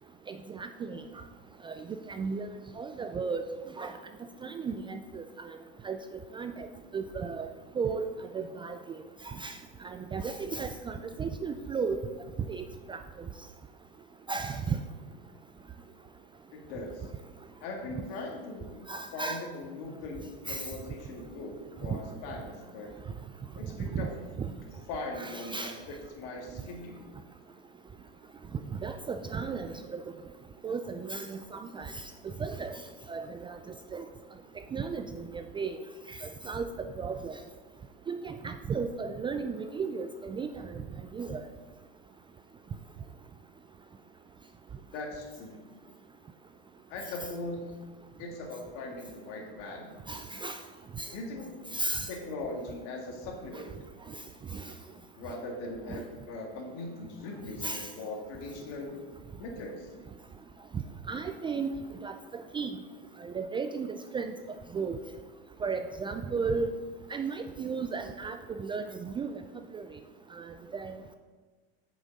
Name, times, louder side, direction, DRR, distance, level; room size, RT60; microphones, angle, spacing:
voice 1, 0.3-1.0 1.6-1.7 2.1-3.4 3.8-3.9 4.4-5.2 5.8-6.0 6.3-6.7 6.9-8.0 8.3-9.0 9.3-9.6 9.8-12.0 12.5-13.0 14.3-14.8 18.9-19.4 20.5-20.6 21.9-22.0 23.9-24.1 24.4-24.5 25.2-25.7 28.8-30.0 30.6-31.9 32.4-32.8 33.1-33.6 33.9-34.0 34.7-35.8 36.2-36.7 37.0-37.3 38.1-40.5 41.1-41.4 50.1-50.6 51.0-51.1 51.7-52.1 53.5-53.6 54.5-54.6 55.9-56.0 57.6-57.9 61.1-61.7 62.0-62.1 62.5-62.7 63.2-64.3 64.7-65.0 65.6-66.7 67.1-69.3 69.7-69.8 70.4-71.0, right 5 dB, 15° right, 7 dB, 0.4 m, -34 dB
voice 2, 16.5-17.1 17.6-18.8 19.1-23.0 23.5-24.1 24.9-27.0 44.9-45.6 46.9-47.8 48.2-50.3 51.1-51.6 52.1-53.7 55.2-58.9 59.4-59.9, left 2 dB, 60° left, 2 dB, 2.1 m, -40 dB
8.8 x 6.2 x 4.1 m, 1.4 s
hypercardioid pair, 105°, 30 cm